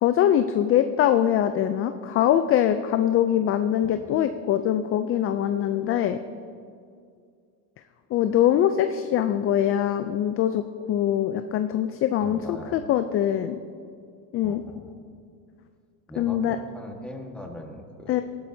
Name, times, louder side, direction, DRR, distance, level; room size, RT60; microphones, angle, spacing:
voice 1, 0.0-6.2 8.1-10.6 10.9-13.6 14.3-14.6 16.2-16.6 18.1-18.2, left 10 dB, 30° left, 9 dB, 0.4 m, -23 dB
voice 2, 12.2-12.8 14.4-14.9 16.1-18.2, left 1 dB, ahead, 1 dB, 1.5 m, -41 dB
16.0 x 11.5 x 2.7 m, 2.3 s
supercardioid pair, 100°, 47 cm